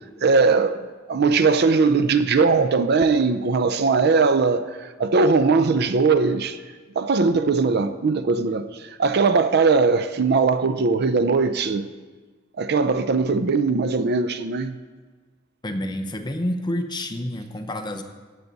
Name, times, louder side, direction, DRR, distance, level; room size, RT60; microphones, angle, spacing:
voice 1, 0.2-0.8 1.1-6.6 7.0-11.8 12.6-14.8, right 4 dB, 55° right, 0.5 m, -20 dB
voice 2, 15.6-18.0, left 1 dB, 20° left, 0.8 m, -28 dB
15.0 x 8.3 x 4.0 m
head